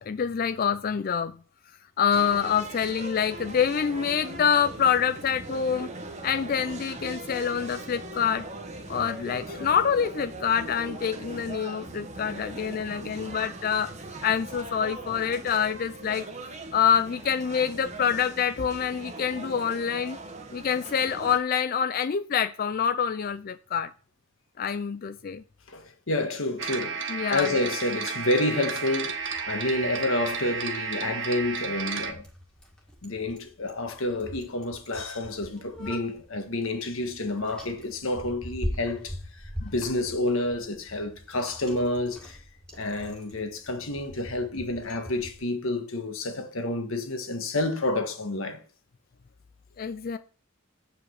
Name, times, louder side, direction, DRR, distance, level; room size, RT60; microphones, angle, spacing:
voice 1, 0.0-1.4 2.0-5.9 6.2-8.4 8.9-13.9 14.2-16.3 16.7-20.2 20.5-23.9 24.6-25.4 27.1-27.5 49.8-50.2, left 7 dB, 45° left, 0.4 m, -26 dB
sound 1, 2.1-21.4, right 2 dB, 35° right, 1.1 m, -40 dB
voice 2, 25.7-32.2 33.0-42.4 42.7-48.6, left 2 dB, 75° left, 1.5 m, -29 dB
sound 2, 26.6-32.1, right 6 dB, 60° right, 1.3 m, -32 dB
Bicycle, 29.1-45.4, equal, 5° left, 1.7 m, -42 dB
8.4 x 5.1 x 6.4 m
head